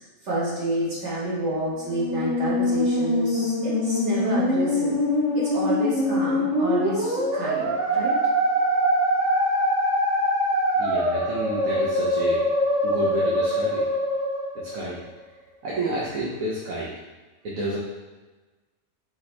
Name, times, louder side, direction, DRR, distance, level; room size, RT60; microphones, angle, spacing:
voice 1, 0.2-5.0 5.3-8.2, right 1 dB, 50° right, -8 dB, 1.8 m, -29 dB
Musical instrument, 1.8-15.2, left 1 dB, 30° right, 1.6 m, -23 dB
voice 2, 10.8-12.4 12.8-13.8 14.5-15.0 15.6-16.9 17.4-17.8, right 2 dB, 70° right, -6 dB, 1.2 m, -30 dB
5.1 x 2.8 x 3.2 m, 1.2 s
omnidirectional pair, 1.5 m